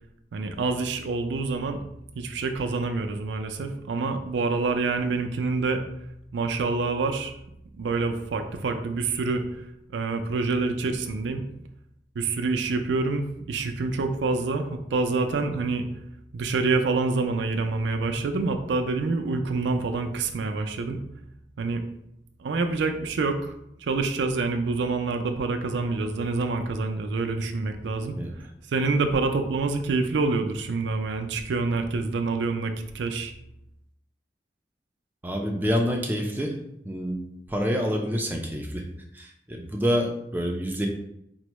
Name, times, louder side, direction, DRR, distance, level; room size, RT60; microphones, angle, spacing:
voice 1, 0.3-1.8 2.2-5.8 6.3-7.3 7.8-9.4 9.9-11.4 12.2-15.8 16.3-21.0 21.6-21.8 22.4-23.5 23.8-28.2 28.7-33.3, right 3 dB, 80° right, 6 dB, 0.4 m, -27 dB
voice 2, 35.2-37.2 37.5-38.9 39.1-40.9, equal, 10° right, 2 dB, 0.4 m, -27 dB
4.4 x 2.0 x 3.0 m, 0.79 s
head